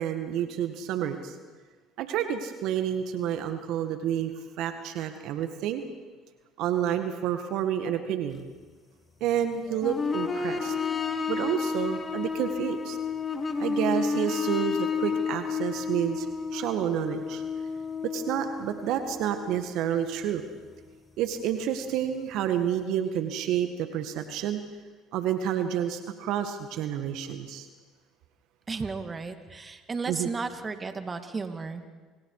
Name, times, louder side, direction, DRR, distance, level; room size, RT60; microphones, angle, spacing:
voice 1, 0.0-1.3 2.0-4.3 4.6-5.8 6.6-8.5 9.2-10.7 11.3-13.0 13.6-16.3 16.5-17.4 18.0-20.4 21.2-24.6 25.1-27.7 30.1-30.3, right 9 dB, 70° right, 7 dB, 1.9 m, -29 dB
sound 1, 9.7-21.0 22.2-22.3, left 5 dB, 30° left, 2.8 m, -31 dB
voice 2, 28.7-31.8, right 4 dB, 30° right, 7 dB, 2.5 m, -34 dB
29.5 x 28.0 x 5.0 m, 1.4 s
supercardioid pair, 75°, 0 cm